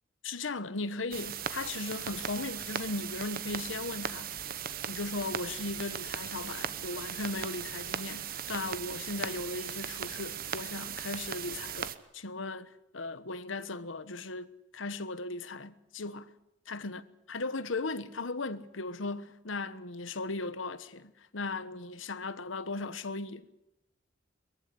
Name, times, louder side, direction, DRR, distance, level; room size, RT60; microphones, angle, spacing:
voice 1, 0.2-4.4 4.9-14.5 14.7-16.3 16.7-23.5, left 3 dB, 90° left, 1.2 m, -37 dB
sound 1, 1.1-12.0, right 8 dB, 50° right, 1.0 m, -38 dB
22.0 x 15.0 x 10.0 m
head